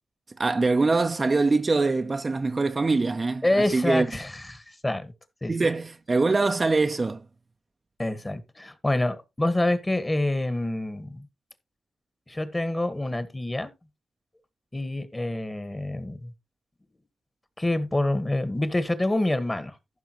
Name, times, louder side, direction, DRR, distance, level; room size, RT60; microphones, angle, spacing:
voice 1, 0.4-4.1 5.5-7.2, right 3 dB, 35° right, 0.6 m, -23 dB
voice 2, 3.4-5.1 5.4-5.5 8.0-11.2 12.3-13.7 14.7-16.3 17.6-19.7, left 1 dB, 20° left, 1.5 m, -27 dB
15.0 x 5.6 x 3.0 m
cardioid pair, 55°, 0 cm